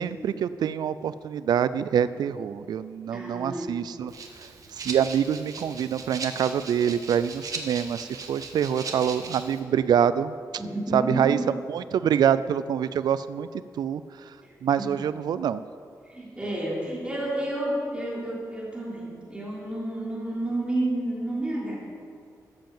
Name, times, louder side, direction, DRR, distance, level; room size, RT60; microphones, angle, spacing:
voice 1, 0.0-4.1 4.4-10.3 10.9-13.5 13.7-14.4 14.6-15.6, right 8 dB, 80° right, 14 dB, 0.4 m, -25 dB
voice 2, 3.1-3.8 10.6-11.4 14.4-14.9 16.0-21.8, right 1 dB, 15° right, -6 dB, 3.4 m, -30 dB
Rattle (instrument), 4.1-9.6, right 4 dB, 55° right, 1.2 m, -38 dB
13.0 x 7.6 x 7.1 m, 2.3 s
wide cardioid pair, 140°, 7 cm